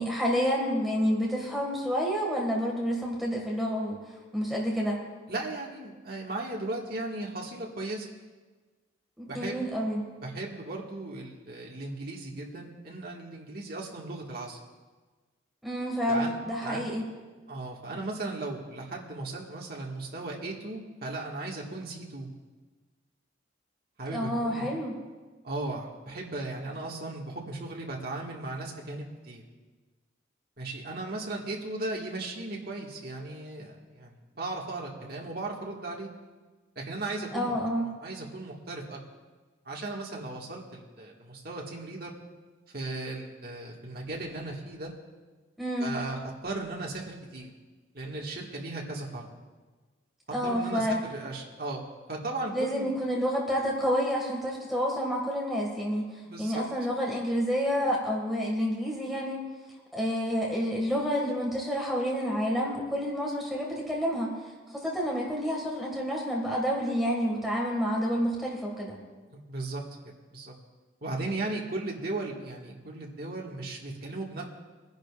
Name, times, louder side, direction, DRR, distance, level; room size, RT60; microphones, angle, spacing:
voice 1, 0.0-4.0 4.3-5.0 9.2-10.0 15.6-17.1 24.1-24.9 37.3-37.9 45.6-45.9 50.3-51.0 52.5-56.1 56.4-59.4 59.9-64.3 64.7-68.9, equal, ahead, -3 dB, 1.8 m, -29 dB
voice 2, 5.3-8.1 9.3-9.6 10.2-14.6 16.1-16.4 16.6-16.9 17.5-22.3 24.0-24.8 25.4-29.4 30.6-36.1 36.8-37.5 37.8-39.0 39.7-42.1 42.7-44.9 45.8-46.2 46.4-47.5 47.9-49.3 50.4-51.8 52.1-52.9 56.2-56.6 69.3-70.0 70.3-70.5 71.0-74.4, right 2 dB, 50° right, -1 dB, 1.8 m, -36 dB
23.0 x 10.5 x 2.5 m, 1.3 s
head